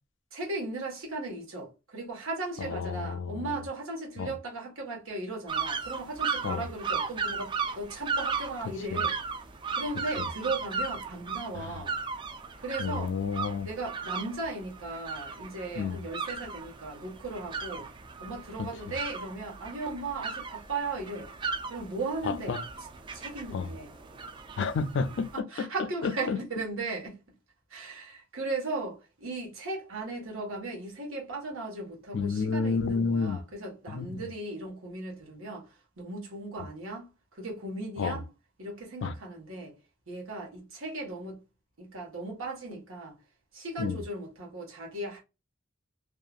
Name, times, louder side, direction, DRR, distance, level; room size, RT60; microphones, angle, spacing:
voice 1, 0.3-9.2 9.7-12.0 12.6-13.1 13.6-17.9 18.2-21.3 21.7-22.6 23.1-23.9 24.6-24.7 25.3-27.2 27.7-38.2 38.6-39.7 40.1-41.4 41.8-43.2 43.5-45.2, right 2 dB, 85° right, 1.3 m, -37 dB
voice 2, 2.6-3.5 4.2-4.3 6.4-6.7 8.9-9.0 10.2-10.3 11.5-11.8 12.8-13.7 15.8-16.0 18.6-18.9 22.2-22.6 23.5-23.7 24.6-25.7 26.0-26.4 32.1-33.4 33.9-34.1 38.0-38.2 39.0-39.1 43.8-44.0, left 5 dB, 60° left, 0.3 m, -31 dB
sound 1, 5.5-25.4, right 5 dB, 25° right, 0.3 m, -36 dB
2.7 x 2.4 x 2.4 m
head